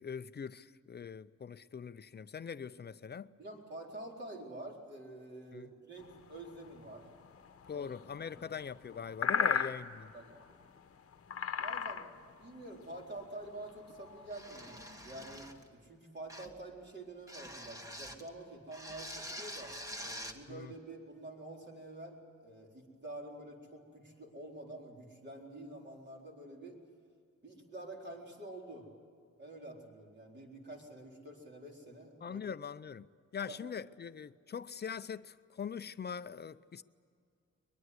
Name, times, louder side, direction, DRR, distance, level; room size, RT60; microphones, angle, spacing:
voice 1, 0.0-3.3 5.5-5.7 7.7-10.1 20.5-20.7 32.2-33.1 33.3-36.8, left 7 dB, 35° left, 0.6 m, -42 dB
voice 2, 3.4-7.1 7.7-7.9 9.4-9.5 10.1-10.4 11.6-26.8 27.4-28.9 29.4-32.4 33.5-33.6, right 2 dB, 35° right, 4.3 m, -48 dB
sound 1, 6.0-15.6, left 7 dB, 50° left, 1.1 m, -39 dB
sound 2, 14.3-15.7 16.3-16.6 17.3-18.3 18.7-20.4, equal, 10° right, 1.7 m, -46 dB
22.5 x 22.5 x 8.1 m
wide cardioid pair, 150°, 29 cm